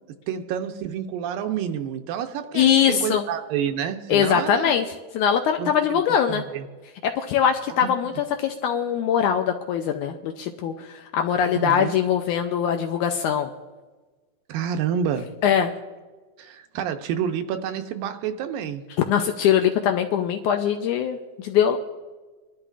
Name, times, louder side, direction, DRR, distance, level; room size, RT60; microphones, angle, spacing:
voice 1, 0.3-4.7 5.6-6.0 6.3-6.7 7.8-7.9 11.5-12.0 14.5-15.3 16.4-18.9, right 8 dB, 85° right, 6 dB, 2.5 m, -29 dB
voice 2, 2.5-3.2 4.1-6.4 7.0-13.5 15.4-15.7 19.0-21.8, left 8 dB, 80° left, 5 dB, 1.8 m, -22 dB
23.0 x 12.0 x 2.4 m, 1.3 s
omnidirectional pair, 4.0 m